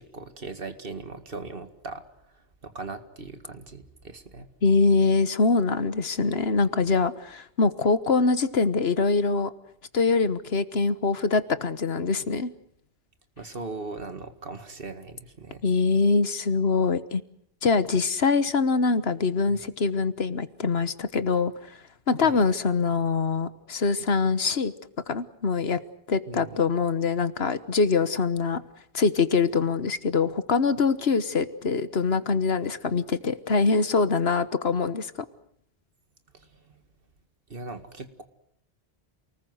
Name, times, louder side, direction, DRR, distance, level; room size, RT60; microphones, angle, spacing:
voice 1, 0.0-2.0 2.6-4.5 13.4-15.6 19.5-19.6 22.2-22.4 26.3-26.6 36.3-36.8 37.5-38.2, right 3 dB, 60° right, 8 dB, 2.2 m, -39 dB
voice 2, 4.6-9.5 9.9-12.5 15.6-17.2 17.6-21.5 22.1-24.7 25.1-25.8 26.1-28.6 28.9-35.1, left 4 dB, 75° left, 13 dB, 1.5 m, -24 dB
28.0 x 20.0 x 7.9 m, 0.68 s
omnidirectional pair, 1.1 m